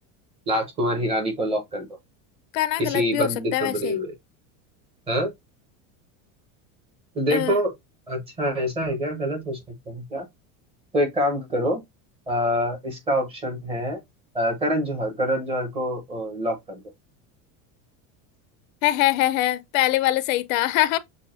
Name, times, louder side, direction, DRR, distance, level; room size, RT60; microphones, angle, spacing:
voice 1, 0.5-1.9 2.8-4.1 5.1-5.3 7.1-7.7 8.1-9.6 9.9-10.2 10.9-11.8 12.3-14.0 14.3-16.8, equal, 15° right, 0.8 m, -25 dB
voice 2, 2.5-4.0 7.3-7.6 18.8-21.0, left 15 dB, 75° left, 0.6 m, -23 dB
6.2 x 2.2 x 2.4 m
cardioid pair, 180°, 40 cm